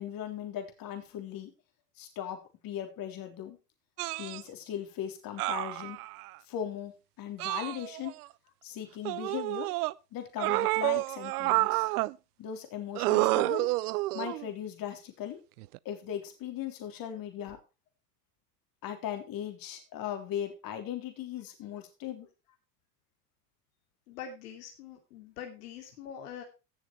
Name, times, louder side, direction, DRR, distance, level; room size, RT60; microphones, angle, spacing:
voice 1, 0.0-1.5 2.0-3.6 4.2-6.0 6.5-8.1 8.6-9.7 10.1-11.9 12.4-13.7 14.1-15.4 15.9-17.6 18.8-22.3, left 10 dB, 45° left, 6 dB, 3.5 m, -38 dB
sound 1, 4.0-4.4 5.4-6.3 7.4-8.3 9.1-9.9 10.4-12.1 13.0-14.5 15.6-15.8, right 20 dB, 70° right, 0.6 m, -29 dB
voice 2, 24.1-26.4, left 8 dB, 70° left, 3 dB, 2.8 m, -44 dB
16.5 x 6.6 x 4.5 m, 0.30 s
hypercardioid pair, 90°, 48 cm